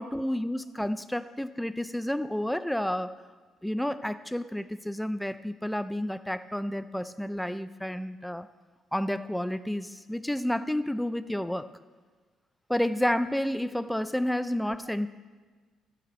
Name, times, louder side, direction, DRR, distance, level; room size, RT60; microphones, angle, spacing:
voice 1, 0.0-3.1 3.6-8.5 8.9-11.7 12.7-15.1, left 1 dB, 5° left, 13 dB, 0.4 m, -30 dB
15.0 x 6.9 x 4.2 m, 1.4 s
cardioid pair, 130°, 0 cm